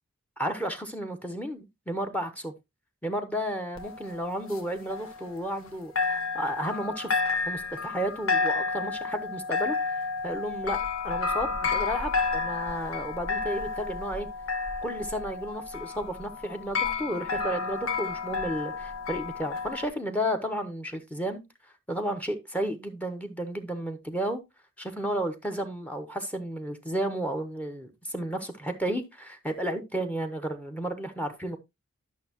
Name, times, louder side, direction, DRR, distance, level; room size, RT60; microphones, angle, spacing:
voice 1, 0.4-2.5 3.0-7.1 7.5-10.0 10.2-14.3 14.8-21.4 21.9-24.4 24.8-31.6, right 1 dB, 10° left, 0.9 m, -32 dB
sound 1, 3.8-5.7 6.0-19.9, left 4 dB, 85° left, 1.3 m, -31 dB
11.5 x 6.3 x 2.9 m
head